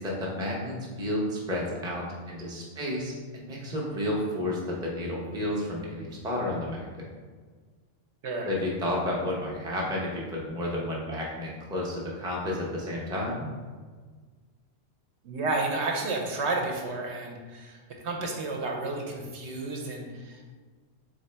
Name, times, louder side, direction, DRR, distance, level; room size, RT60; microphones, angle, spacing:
voice 1, 0.0-7.1 8.4-13.5, left 1 dB, 5° right, -4 dB, 0.5 m, -31 dB
voice 2, 15.2-20.4, right 3 dB, 70° right, 1 dB, 0.8 m, -31 dB
3.9 x 3.6 x 3.3 m, 1.5 s
omnidirectional pair, 1.3 m